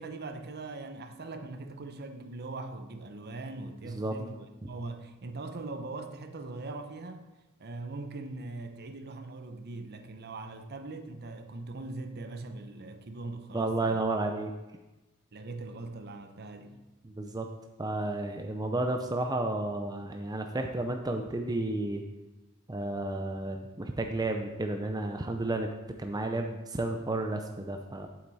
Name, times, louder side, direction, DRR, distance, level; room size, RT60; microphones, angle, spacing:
voice 1, 0.0-7.3 7.6-14.0 15.3-16.8, right 2 dB, 50° right, 0.7 m, -41 dB
voice 2, 13.5-14.5 17.0-17.5 17.8-22.0 22.7-25.7 26.0-28.1, right 2 dB, 20° right, 0.5 m, -32 dB
8.8 x 7.9 x 4.1 m
head